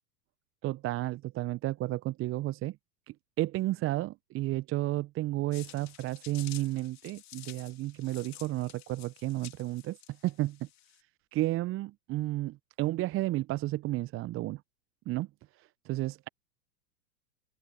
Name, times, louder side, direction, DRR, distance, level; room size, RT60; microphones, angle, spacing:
voice 1, 0.6-2.8 3.4-10.0 10.2-10.7 11.3-14.6 15.1-15.3 15.6-16.3, right 17 dB, 25° right, 0.8 m, -32 dB
sound 1, 5.5-11.0, left 14 dB, 35° left, 3.3 m, -51 dB
open air
hypercardioid pair, 95°, 49 cm